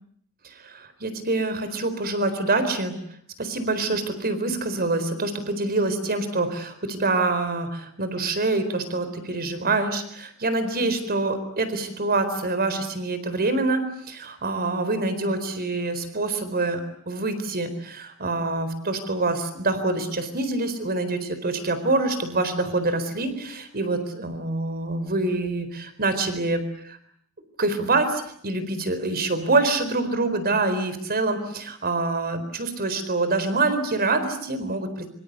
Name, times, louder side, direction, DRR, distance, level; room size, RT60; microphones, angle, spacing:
voice 1, 0.6-3.0 3.4-27.0 27.6-35.1, right 2 dB, 45° right, 11 dB, 4.3 m, -26 dB
25.5 x 25.0 x 8.2 m, 0.65 s
head